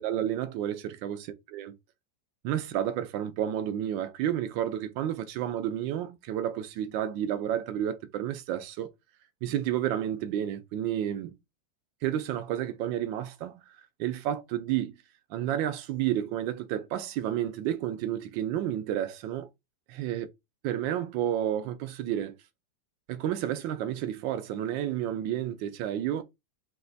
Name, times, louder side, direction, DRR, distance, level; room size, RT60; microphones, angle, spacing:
voice 1, 0.0-1.7 2.4-8.9 9.4-11.4 12.0-13.6 14.0-15.0 15.3-19.5 19.9-20.3 20.6-22.4 23.1-26.2, right 11 dB, 80° right, 1.3 m, -31 dB
5.4 x 2.9 x 2.6 m
omnidirectional pair, 2.1 m